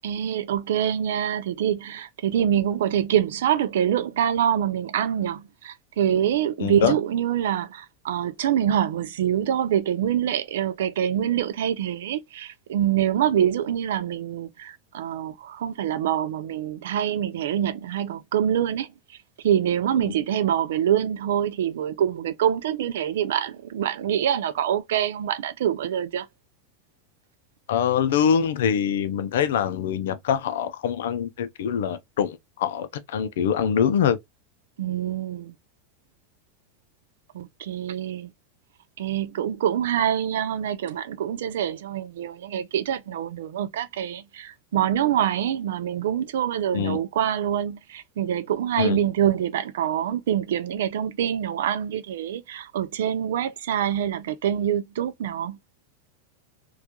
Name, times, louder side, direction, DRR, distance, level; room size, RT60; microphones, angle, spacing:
voice 1, 0.0-18.9 19.4-26.3 34.8-35.5 37.3-38.3 39.0-55.6, right 10 dB, 85° right, 0.3 m, -25 dB
voice 2, 6.6-7.0 27.7-34.2 46.7-47.0 48.8-49.0, left 8 dB, 85° left, 0.4 m, -24 dB
2.3 x 2.2 x 2.7 m
supercardioid pair, 120°, 0 cm